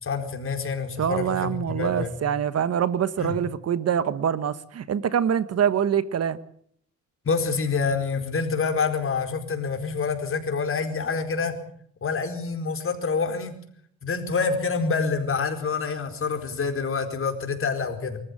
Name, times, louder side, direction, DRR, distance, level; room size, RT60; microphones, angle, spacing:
voice 1, 0.0-2.2 3.2-3.4 7.2-11.5 12.0-13.5 14.0-18.2, left 5 dB, 45° left, 5 dB, 4.6 m, -27 dB
voice 2, 1.0-6.4, right 8 dB, 55° right, 15 dB, 1.3 m, -25 dB
24.5 x 14.0 x 8.7 m, 0.63 s
cardioid pair, 90°, 30 cm